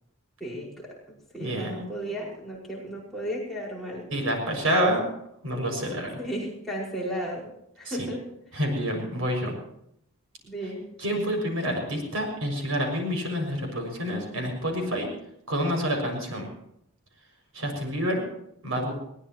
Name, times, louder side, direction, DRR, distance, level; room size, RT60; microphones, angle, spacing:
voice 1, 0.4-1.0 1.3-4.1 6.2-7.5 7.8-8.3 10.4-10.9, equal, ahead, -5 dB, 5.4 m, -34 dB
voice 2, 1.4-1.9 4.1-5.0 5.4-6.1 7.8-8.0 8.5-9.6 11.0-15.1 15.5-16.5 17.5-18.2 18.6-18.9, equal, 70° right, 2 dB, 6.4 m, -28 dB
22.0 x 18.5 x 3.1 m, 0.75 s
head